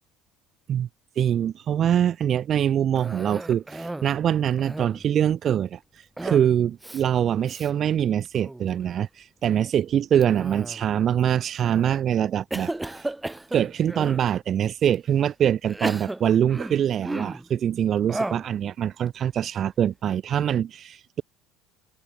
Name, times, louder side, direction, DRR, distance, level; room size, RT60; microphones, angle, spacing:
voice 1, 1.2-5.8 6.2-13.1 13.5-21.2, right 9 dB, 45° right, 2.2 m, -24 dB
Cough, 3.0-4.1 4.5-5.1 6.2-6.5 6.8-7.0 7.5-7.7 8.2-8.7 10.2-11.0 11.6-12.0 12.5-14.3 14.9-15.0 15.7-17.5 18.1-18.5, right 2 dB, 10° right, 1.6 m, -34 dB
supercardioid pair, 95°, 0 cm